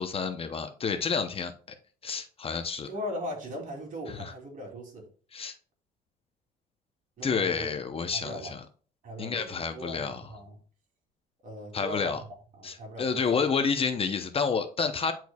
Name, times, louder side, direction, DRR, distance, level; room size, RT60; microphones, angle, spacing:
voice 1, 0.0-1.5 2.0-2.9 4.1-4.3 5.3-5.5 7.2-8.6 9.2-10.3 11.7-12.2 12.6-15.1, left 5 dB, 35° left, 0.8 m, -29 dB
voice 2, 2.9-5.0 7.2-7.7 8.1-8.5 9.0-10.6 11.4-12.2 12.6-13.2, equal, 50° right, 3.0 m, -39 dB
10.0 x 4.6 x 2.3 m
cardioid pair, 110°, 17 cm